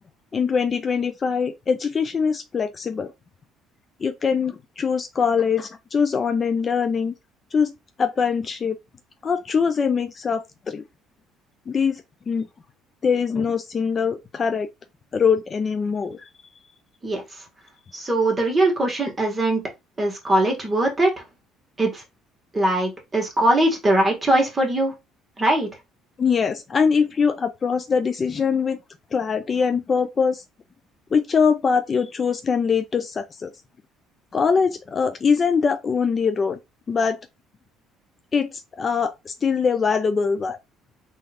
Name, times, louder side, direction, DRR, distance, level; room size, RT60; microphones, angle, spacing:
voice 1, 0.3-3.1 4.0-7.1 7.5-7.7 8.0-8.8 9.2-10.8 11.7-12.5 13.0-14.7 15.1-16.3 26.2-28.8 29.1-30.4 31.1-33.5 34.3-36.6 36.9-37.2 38.3-40.6, left 6 dB, 30° left, 0.4 m, -22 dB
voice 2, 17.9-19.6 20.0-21.2 21.8-22.0 22.5-24.9 25.4-25.7, right 1 dB, 15° right, 1.7 m, -21 dB
3.8 x 2.7 x 3.4 m
cardioid pair, 115°, 0 cm